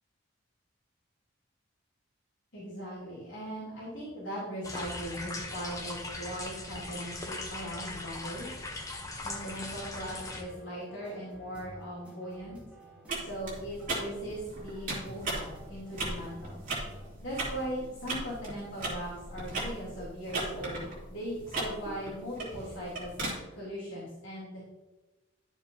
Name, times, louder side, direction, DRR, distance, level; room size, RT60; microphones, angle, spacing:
voice 1, 2.5-8.5 9.2-12.6 13.2-16.6 17.2-24.6, equal, 70° left, -9 dB, 3.2 m, -39 dB
sound 1, 4.6-10.4, left 2 dB, 15° left, 0.8 m, -39 dB
sound 2, 9.5-17.1, right 1 dB, 5° right, 2.5 m, -52 dB
sound 3, 13.1-23.3, right 2 dB, 40° right, 2.9 m, -38 dB
11.5 x 7.2 x 2.8 m, 1.1 s
head